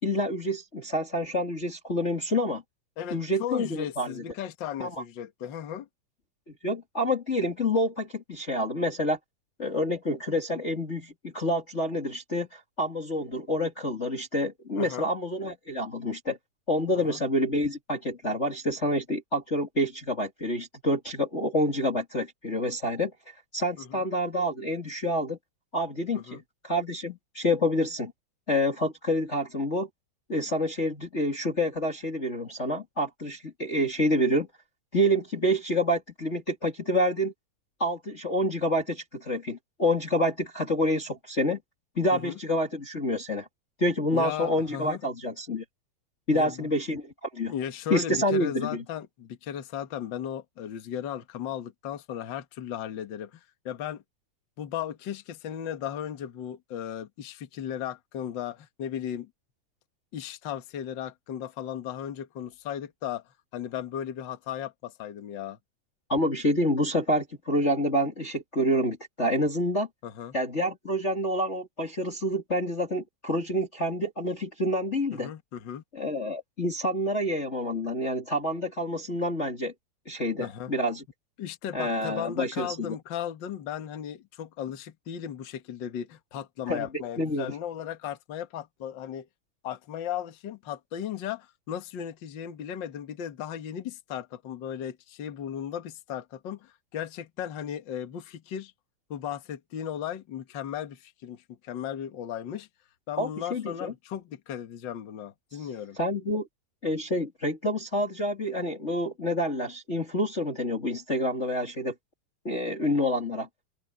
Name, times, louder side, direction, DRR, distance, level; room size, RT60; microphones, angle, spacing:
voice 1, 0.0-2.6 3.1-4.2 4.8-5.0 6.5-9.2 9.6-16.4 16.7-25.4 25.7-28.1 28.5-29.9 30.3-34.5 34.9-37.3 37.8-41.6 42.0-43.5 43.8-45.6 46.3-47.5 47.9-48.8 66.1-69.9 70.3-75.3 75.9-79.7 80.1-81.0 81.7-83.0 86.7-87.5 103.2-103.9 106.0-106.5 106.8-111.9 112.4-113.5, left 1 dB, 25° left, 2.1 m, -28 dB
voice 2, 3.0-5.9 14.8-15.1 16.9-17.2 23.8-24.0 26.1-26.4 42.1-42.4 44.1-45.0 46.3-46.7 47.5-54.0 54.6-59.3 60.1-63.2 63.5-65.6 70.0-70.3 75.1-75.8 80.4-80.7 81.4-89.3 89.6-98.7 99.1-102.7 103.1-106.0, left 9 dB, 50° left, 1.5 m, -36 dB
open air
omnidirectional pair, 4.0 m